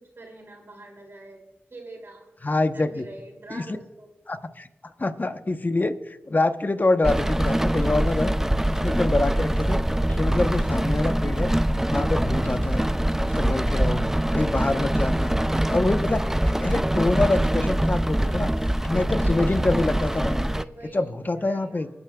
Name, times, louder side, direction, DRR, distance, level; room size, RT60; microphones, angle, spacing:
voice 1, 0.0-2.3 2.7-4.1 20.2-21.9, right 2 dB, 60° right, 1 dB, 2.7 m, -45 dB
voice 2, 2.4-3.1 3.5-3.6 4.3-4.7 5.0-8.3 8.7-9.8 10.1-11.5 11.9-12.9 13.3-16.2 16.6-18.5 18.8-20.5 20.9-21.9, left 2 dB, 40° left, 9 dB, 0.9 m, -25 dB
Rain, 7.0-20.6, right 1 dB, 10° right, 0.4 m, -23 dB
23.5 x 9.7 x 2.3 m, 1.1 s
cardioid pair, 45°, 4 cm